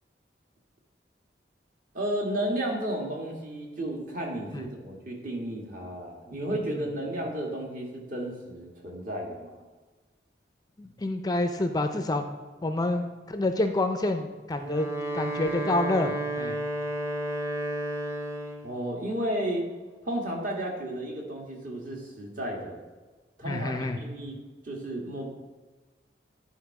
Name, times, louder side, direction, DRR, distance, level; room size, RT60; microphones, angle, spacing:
voice 1, 1.9-9.6 18.6-19.7 20.0-22.8 23.4-24.4 24.6-25.3, right 1 dB, 50° right, -1 dB, 1.6 m, -33 dB
voice 2, 10.8-12.2 12.6-14.9 15.1-16.6 23.4-24.0, left 2 dB, 20° left, 7 dB, 0.4 m, -28 dB
Wind instrument woodwind instrument, 14.5-18.7, right 1 dB, 15° right, 0.8 m, -32 dB
10.0 x 4.3 x 4.7 m, 1.3 s
head